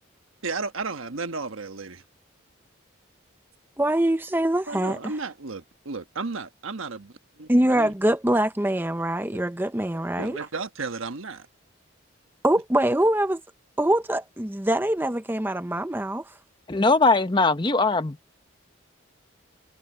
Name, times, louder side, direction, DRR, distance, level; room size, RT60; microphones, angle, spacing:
voice 1, 0.4-2.0 4.7-7.9 10.2-11.5, right 4 dB, 80° right, 1.3 m, -34 dB
voice 2, 3.8-5.0 7.5-10.4 12.4-13.4 13.8-16.3, right 1 dB, 10° right, 0.7 m, -23 dB
voice 3, 16.7-18.2, left 3 dB, 20° left, 0.9 m, -20 dB
head